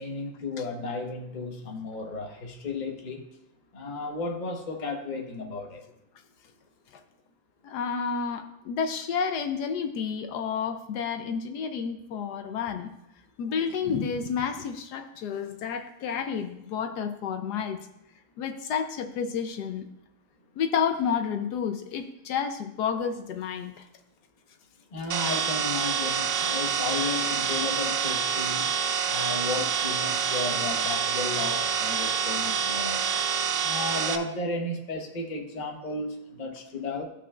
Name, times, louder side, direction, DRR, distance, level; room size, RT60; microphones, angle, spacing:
voice 1, 0.0-3.2 3.7-5.8 24.9-28.7 29.1-33.1 33.6-37.0, left 3 dB, 30° left, 2 dB, 1.0 m, -34 dB
voice 2, 7.6-12.9 13.4-17.8 18.4-19.9 20.6-23.8, left 6 dB, 75° left, 7 dB, 1.2 m, -30 dB
sound 1, 25.1-34.2, right 7 dB, 60° right, 0.9 m, -27 dB
16.0 x 5.9 x 2.4 m, 0.83 s
omnidirectional pair, 1.8 m